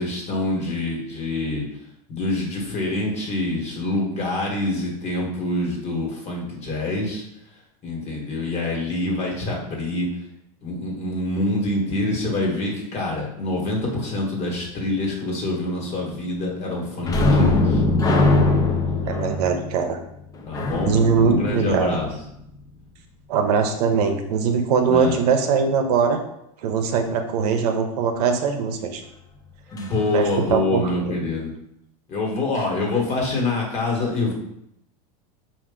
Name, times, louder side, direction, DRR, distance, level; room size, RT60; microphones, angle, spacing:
voice 1, 0.0-1.6 2.1-7.2 7.8-10.1 10.6-18.4 20.5-20.9 21.2-22.1 24.9-25.2 29.7-31.5 32.1-34.3, left 2 dB, 35° left, -1 dB, 1.4 m, -26 dB
sound 1, 17.0-22.4 29.8-29.9 30.3-30.5, left 2 dB, 20° left, 0.5 m, -21 dB
voice 2, 19.1-20.0 20.8-21.9 23.3-26.2 26.6-29.0 30.1-30.8, right 5 dB, 75° right, 5 dB, 0.7 m, -21 dB
4.8 x 2.5 x 3.7 m, 0.79 s
supercardioid pair, 125°, 20 cm